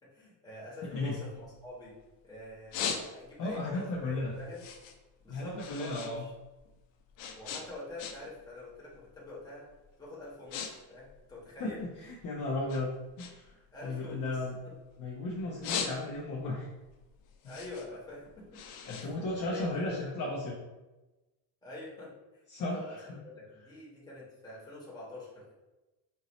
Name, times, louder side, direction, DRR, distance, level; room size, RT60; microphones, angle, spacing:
voice 1, 0.0-1.9 2.2-4.6 5.2-6.3 7.3-9.7 10.0-12.1 13.7-14.7 15.6-15.7 17.4-18.6 19.2-20.1 21.6-22.4 22.7-25.5, left 2 dB, 10° left, -7 dB, 1.2 m, -46 dB
sound 1, 1.0-2.1 2.5-3.5 3.9-6.1 6.4-8.4 8.7-9.1 9.7-9.9 10.2-10.7 11.0-12.2 12.7-15.0 15.4-16.4 16.8-20.0, left 7 dB, 70° left, 0.7 m, -39 dB
voice 2, 3.4-4.3 5.3-6.3 11.6-12.9 13.2-13.5 13.8-14.6 15.0-16.7 18.8-20.5 22.5-23.2, left 2 dB, 40° left, -5 dB, 0.8 m, -35 dB
5.3 x 2.7 x 3.0 m, 1.1 s
cardioid pair, 170°, 46 cm